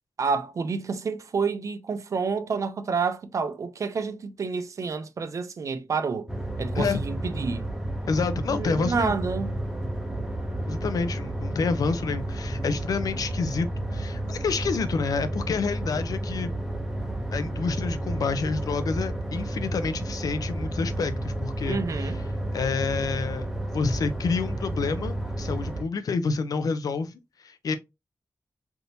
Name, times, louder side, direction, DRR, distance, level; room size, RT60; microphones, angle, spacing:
voice 1, 0.2-6.3 6.6-7.7 8.5-9.6 21.7-22.2, right 5 dB, 55° right, 0.4 m, -29 dB
sound 1, 6.3-25.8, right 1 dB, 5° right, 0.7 m, -31 dB
voice 2, 8.1-9.1 10.7-16.5 17.3-22.1 22.5-23.5 23.7-27.7, left 4 dB, 70° left, 0.4 m, -28 dB
3.4 x 2.7 x 2.7 m
wide cardioid pair, 160°, 6 cm